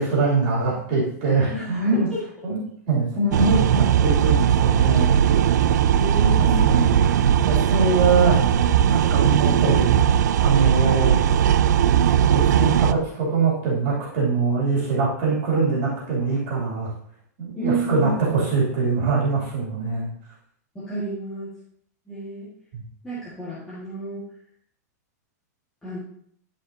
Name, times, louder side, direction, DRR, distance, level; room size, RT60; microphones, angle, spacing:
voice 1, 0.0-2.1 2.4-2.6 2.9-5.2 6.4-7.0 7.4-8.4 8.9-9.9 10.4-11.2 12.3-16.9 17.4-20.1 22.7-22.8, right 4 dB, 35° right, -6 dB, 2.6 m, -23 dB
voice 2, 1.5-2.2 5.8-7.0 17.5-18.3 20.7-21.5 22.1-22.5 23.0-24.3 25.8-26.0, right 1 dB, 5° left, -11 dB, 1.6 m, -31 dB
sound 1, 3.3-12.9, right 9 dB, 75° right, 0.4 m, -18 dB
12.0 x 5.1 x 2.7 m, 0.65 s
supercardioid pair, 170°, 9 cm